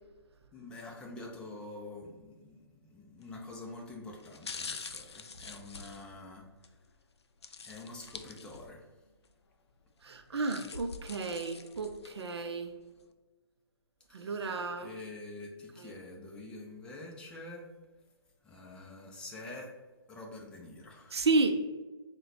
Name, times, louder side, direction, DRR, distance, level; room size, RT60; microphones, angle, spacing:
voice 1, 0.5-6.5 7.6-8.8 14.1-17.7 18.4-19.7 20.1-21.2, left 2 dB, 5° left, -1 dB, 0.5 m, -46 dB
sound 1, 3.2-3.5 4.2-6.7 7.4-8.9 9.2-9.3 10.1-12.3 12.8-12.9, left 5 dB, 90° left, 0.4 m, -45 dB
voice 2, 10.0-12.7 14.1-14.9 15.8-15.9 21.1-21.6, right 3 dB, 80° right, 6 dB, 0.5 m, -32 dB
3.7 x 2.2 x 4.2 m, 1.2 s
hypercardioid pair, 145°, 13 cm